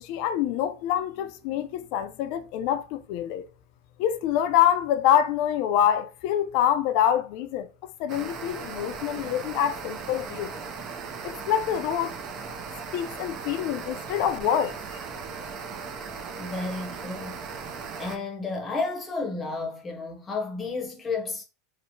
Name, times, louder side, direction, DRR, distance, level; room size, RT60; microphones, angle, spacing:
voice 1, 0.0-3.5 4.0-7.7 8.0-10.5 11.2-12.1 12.9-14.8, left 10 dB, 60° left, 0.3 m, -25 dB
sound 1, 8.1-18.2, right 5 dB, 45° right, 0.4 m, -38 dB
voice 2, 16.4-17.4 18.0-21.4, left 3 dB, 20° left, 0.7 m, -32 dB
2.8 x 2.1 x 2.6 m
supercardioid pair, 125°, 0 cm